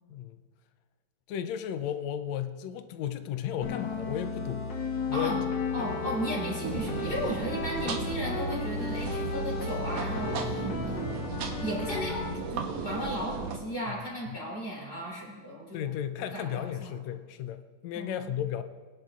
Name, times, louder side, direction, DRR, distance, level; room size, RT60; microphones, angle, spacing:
voice 1, 1.3-4.7 5.1-5.4 13.9-14.0 14.3-14.4 15.7-18.6, left 10 dB, 75° left, 10 dB, 1.7 m, -34 dB
sound 1, 3.6-12.4, left 3 dB, 55° left, 1.4 m, -34 dB
voice 2, 5.1-5.4 5.7-15.8 16.2-16.9 17.9-18.3, equal, 30° left, -5 dB, 3.6 m, -35 dB
sound 2, 6.6-13.6, right 5 dB, 70° right, 2.0 m, -36 dB
22.0 x 11.0 x 2.4 m, 1.5 s
omnidirectional pair, 3.4 m